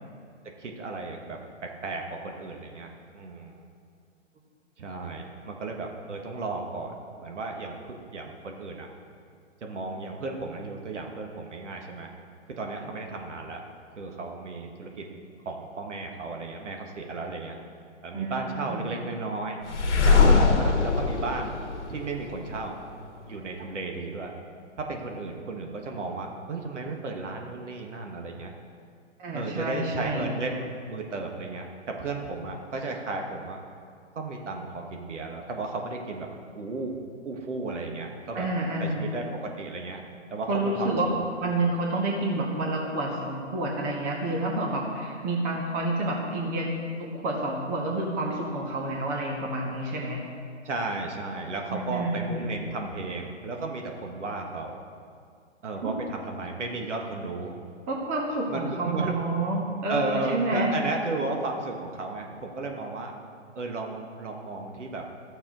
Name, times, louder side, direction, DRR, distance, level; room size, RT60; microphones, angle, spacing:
voice 1, 0.6-2.9 3.1-3.7 4.8-6.9 7.2-8.9 9.6-12.1 12.5-13.6 14.0-15.1 15.5-17.6 18.0-19.6 20.1-21.6 21.9-22.7 23.3-24.3 24.8-28.5 29.3-33.6 34.2-36.3 36.5-36.9 37.2-38.5 38.8-40.0 40.3-41.2 50.6-54.8 55.6-57.6 58.5-59.2 59.9-63.1 63.6-65.0, right 3 dB, 70° right, 2 dB, 1.6 m, -34 dB
voice 2, 18.1-18.9 29.2-30.3 38.3-39.1 40.5-41.1 41.4-46.7 47.0-50.2 51.7-52.5 55.8-55.9 57.9-60.7, right 2 dB, 20° right, -1 dB, 1.4 m, -29 dB
sound 1, 19.7-22.6, left 4 dB, 65° left, 1.5 m, -22 dB
14.0 x 7.1 x 3.9 m, 2.2 s
figure-of-eight pair, 135°, 37 cm